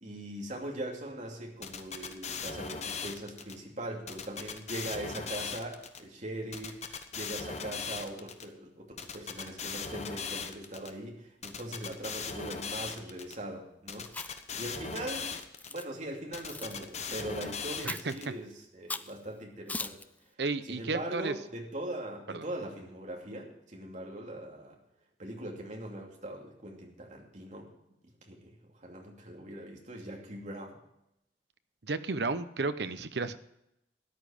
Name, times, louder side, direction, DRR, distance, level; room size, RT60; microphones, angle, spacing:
voice 1, 0.0-6.8 7.1-14.1 14.6-15.4 15.7-20.0 20.7-24.8 25.2-27.7 28.2-30.8, right 1 dB, 40° right, 0 dB, 2.8 m, -41 dB
sound 1, 1.6-3.5 4.1-6.0 6.5-8.4 9.0-10.9 11.4-13.4 13.9-15.8 16.3-18.3, left 5 dB, 40° left, 1.1 m, -38 dB
Chewing mastication, 14.1-14.5 15.2-15.8 16.5-16.8 17.8-18.2 18.9-19.1 19.7-20.0, left 3 dB, 10° left, 0.4 m, -39 dB
voice 2, 20.4-21.3 22.3-22.4 31.8-33.4, right 3 dB, 65° right, 12 dB, 0.8 m, -33 dB
13.5 x 10.0 x 5.0 m, 0.82 s
head